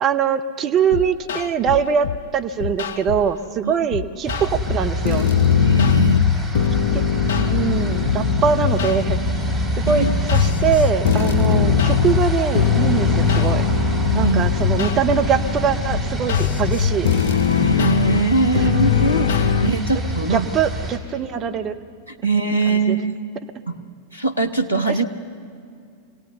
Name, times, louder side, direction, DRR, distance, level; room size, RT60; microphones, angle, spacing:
voice 1, 0.0-5.3 6.9-7.1 7.3-9.2 9.5-9.6 9.9-10.1 10.3-13.6 14.1-17.1 18.5-18.7 20.3-21.7 22.7-23.0, right 7 dB, 30° right, 5 dB, 1.1 m, -22 dB
sound 1, 0.9-2.2 2.6-3.3 3.9-19.7, left 8 dB, 60° left, 0.5 m, -21 dB
sound 2, 4.3-21.0, right 1 dB, ahead, 4.1 m, -26 dB
voice 2, 5.6-6.2 9.9-10.2 12.9-13.0 14.1-14.8 17.6-20.5 22.2-23.3 23.7-23.8 24.1-25.0, right 3 dB, 90° right, 5 dB, 1.2 m, -22 dB
sound 3, 7.9-19.2, right 3 dB, 60° right, 2.9 m, -38 dB
25.5 x 17.5 x 6.9 m, 2.3 s
figure-of-eight pair, 90°, 0 cm